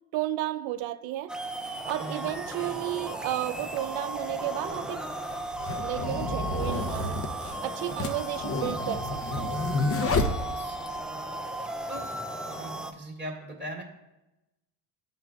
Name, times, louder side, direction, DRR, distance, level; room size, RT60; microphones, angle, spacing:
voice 1, 0.1-1.3 1.9-5.0 5.8-7.2 7.6-9.7, right 14 dB, 65° right, 0.6 m, -33 dB
sound 1, 1.3-12.9, right 1 dB, ahead, 0.3 m, -35 dB
voice 2, 2.0-2.3 10.2-10.8 11.9-12.1 12.4-13.8, right 1 dB, 20° right, 2.2 m, -40 dB
sound 2, 3.6-3.7 4.6-11.0, left 2 dB, 30° left, 0.8 m, -30 dB
11.0 x 3.8 x 2.4 m
supercardioid pair, 75°, 50 cm